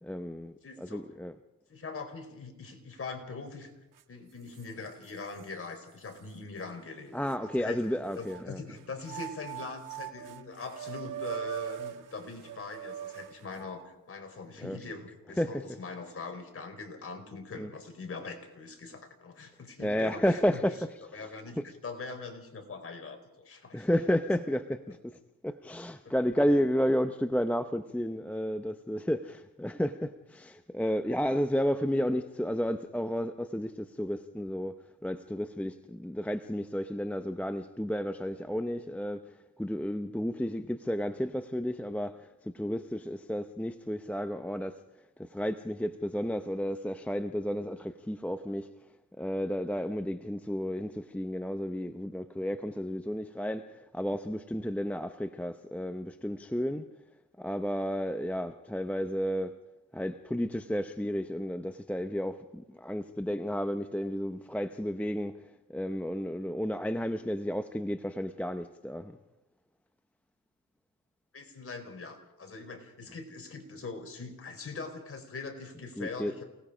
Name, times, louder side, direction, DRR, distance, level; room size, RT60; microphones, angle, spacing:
voice 1, 0.0-1.3 7.1-8.6 14.6-14.8 15.4-15.6 17.6-17.7 19.8-20.8 21.1-21.3 21.6-21.7 23.7-25.2 25.4-34.7 35.0-39.2 39.6-44.8 45.2-48.7 49.2-56.9 57.4-59.6 59.9-65.4 65.7-69.2 76.0-76.3, equal, 5° left, 0.7 m, -32 dB
voice 2, 0.6-1.1 1.7-3.7 4.1-7.1 7.4-20.6 21.1-23.9 26.0-26.1 71.3-76.4, left 4 dB, 40° left, 4.6 m, -42 dB
sound 1, 4.0-4.1 4.5-5.5 6.1-6.2 7.3-8.4 9.0-13.9, right 10 dB, 60° right, 1.6 m, -41 dB
29.0 x 19.0 x 5.0 m
cardioid pair, 90°, 35 cm